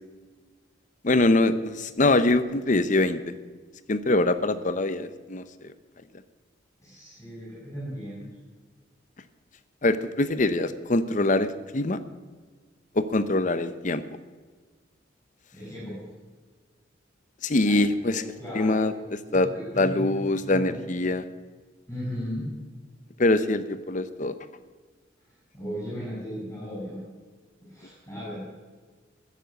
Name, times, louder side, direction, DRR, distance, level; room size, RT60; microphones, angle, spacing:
voice 1, 1.0-3.2 3.9-5.4 9.8-12.0 13.0-14.0 17.4-18.2 18.5-18.9 19.3-19.5 19.8-21.3 23.2-24.3, left 2 dB, 40° left, 12 dB, 0.7 m, -23 dB
voice 2, 6.8-8.2 15.5-16.0 17.5-17.8 18.1-19.0 19.3-20.8 21.9-22.5 25.5-27.0 27.6-28.4, equal, 15° left, -6 dB, 5.1 m, -36 dB
15.5 x 7.5 x 8.1 m, 1.4 s
head